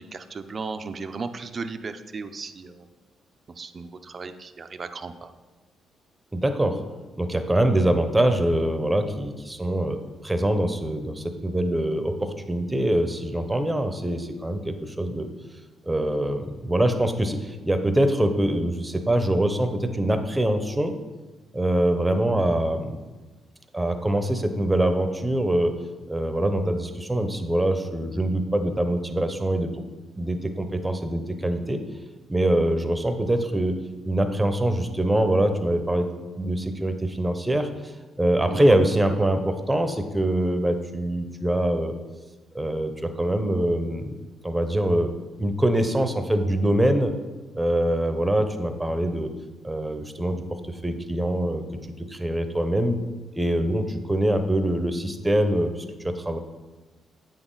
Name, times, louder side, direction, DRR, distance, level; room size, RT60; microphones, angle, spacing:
voice 1, 0.0-2.9 3.6-5.3 38.5-38.7, right 4 dB, 40° right, 9 dB, 0.5 m, -36 dB
voice 2, 6.3-6.8 7.2-15.3 15.9-21.0 21.5-23.0 23.7-25.8 26.1-29.8 30.2-31.8 32.3-33.8 34.0-36.1 36.4-37.7 38.2-41.9 42.5-44.1 44.4-45.1 45.4-47.1 47.5-49.3 49.6-51.6 52.0-53.0 53.3-56.4, right 1 dB, 10° right, 7 dB, 0.8 m, -24 dB
8.7 x 6.1 x 3.9 m, 1.2 s
cardioid pair, 90°, 0 cm